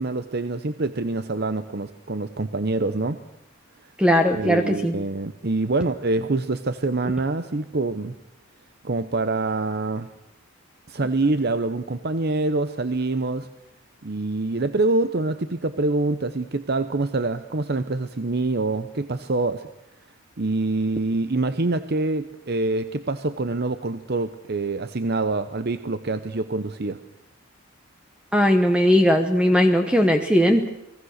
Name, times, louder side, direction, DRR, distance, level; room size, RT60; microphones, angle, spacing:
voice 1, 0.0-3.2 4.3-8.2 8.8-10.1 10.9-13.5 14.0-19.7 20.4-27.0, right 2 dB, 50° right, 11 dB, 0.8 m, -25 dB
voice 2, 4.0-5.0 28.3-30.7, equal, 5° right, 5 dB, 1.1 m, -18 dB
29.5 x 20.0 x 6.5 m, 0.86 s
head